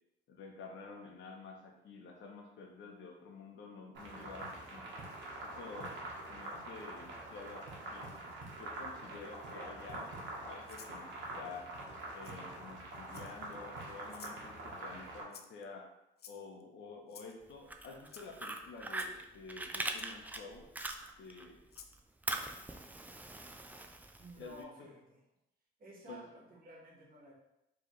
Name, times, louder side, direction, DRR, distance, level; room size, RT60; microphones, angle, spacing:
voice 1, 0.3-4.8 5.4-8.1 8.6-11.1 11.4-11.7 12.1-15.9 16.3-20.7 21.2-21.6 24.4-24.9 26.1-26.2, left 4 dB, 70° left, 1 dB, 0.9 m, -50 dB
sound 1, 3.9-15.2, right 2 dB, 70° right, 1.2 m, -45 dB
Rattle (instrument), 10.7-11.0 12.2-12.4 13.1-13.5 14.1-14.4 15.3-15.6 16.2-16.6 17.1-17.3 18.1-18.3 18.9-19.2 20.0-20.1 20.9-21.0 21.7-21.9, left 7 dB, 55° left, 0.5 m, -53 dB
Fire, 17.5-21.4 21.8-24.6, right 2 dB, 10° right, 0.4 m, -41 dB
voice 2, 24.2-25.2 25.8-27.3, equal, 45° right, -3 dB, 1.5 m, -53 dB
4.4 x 3.2 x 3.1 m, 0.89 s
cardioid pair, 90°, 20 cm